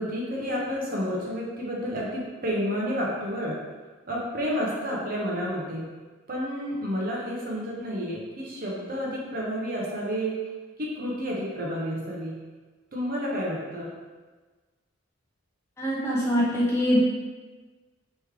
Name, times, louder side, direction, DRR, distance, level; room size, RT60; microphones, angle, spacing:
voice 1, 0.0-3.6 4.1-5.9 6.3-10.4 10.8-12.4 12.9-13.9, equal, 45° right, -4 dB, 0.8 m, -30 dB
voice 2, 15.8-17.0, equal, 15° left, -6 dB, 0.6 m, -23 dB
3.2 x 3.1 x 3.5 m, 1.3 s
head